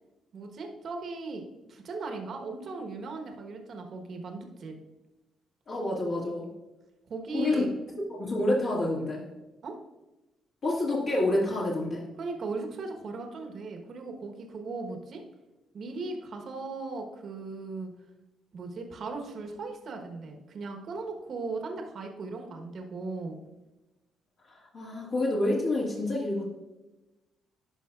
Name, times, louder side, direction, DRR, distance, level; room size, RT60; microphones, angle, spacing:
voice 1, 0.3-1.4 1.7-4.7 7.1-7.7 9.6-9.8 12.2-15.2 15.7-17.9 18.5-23.4, right 3 dB, 60° right, 3 dB, 1.1 m, -37 dB
voice 2, 5.7-6.5 7.3-7.6 8.1-9.3 10.6-12.0 24.4-26.4, left 2 dB, 55° left, -5 dB, 1.8 m, -28 dB
11.0 x 5.4 x 2.4 m, 1.1 s
cardioid pair, 90°, 0 cm